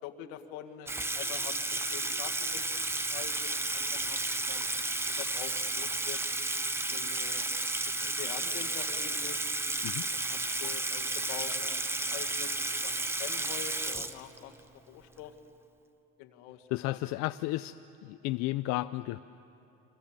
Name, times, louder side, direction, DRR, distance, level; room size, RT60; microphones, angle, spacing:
voice 1, 0.0-4.7 5.1-6.2 6.9-7.5 8.0-9.4 10.0-12.5 12.8-14.5 14.9-15.3 16.2-17.0, left 10 dB, 85° left, 4 dB, 1.9 m, -45 dB
Water tap faucet / Sink (filling or washing), 0.9-14.6, right 2 dB, 10° right, 0.8 m, -32 dB
voice 2, 16.7-19.2, left 17 dB, 70° left, 11 dB, 0.6 m, -33 dB
28.5 x 24.5 x 7.4 m, 2.8 s
cardioid pair, 135°, 30 cm